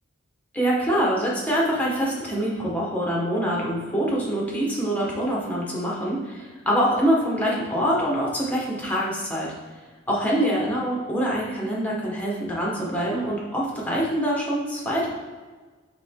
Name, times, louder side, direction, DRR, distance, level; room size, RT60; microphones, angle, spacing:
voice 1, 0.5-9.5 10.1-15.1, equal, 10° left, -4 dB, 1.4 m, -25 dB
7.4 x 3.4 x 3.7 m, 1.4 s
head